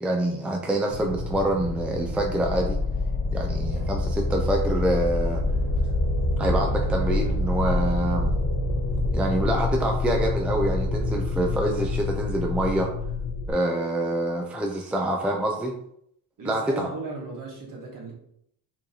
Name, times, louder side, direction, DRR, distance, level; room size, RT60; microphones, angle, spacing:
voice 1, 0.0-2.8 3.3-5.4 6.4-8.3 9.1-12.9 13.5-15.7 16.4-16.9, right 1 dB, 5° right, 1 dB, 0.4 m, -26 dB
sound 1, 0.9-13.5, left 2 dB, 70° left, 1.0 m, -26 dB
voice 2, 16.4-18.1, right 3 dB, 55° right, -3 dB, 1.7 m, -36 dB
4.4 x 3.2 x 2.8 m, 0.70 s
cardioid pair, 115°, 39 cm